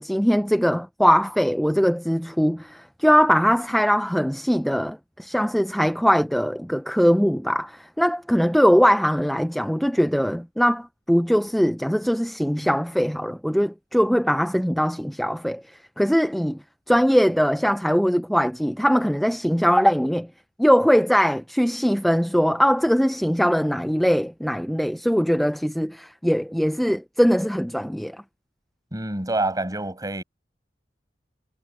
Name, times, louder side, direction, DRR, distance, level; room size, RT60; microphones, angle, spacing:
voice 1, 0.0-15.6 16.0-16.6 16.9-20.3 20.6-28.2, equal, ahead, 0.5 m, -21 dB
voice 2, 28.9-30.2, right 2 dB, 20° right, 6.6 m, -27 dB
head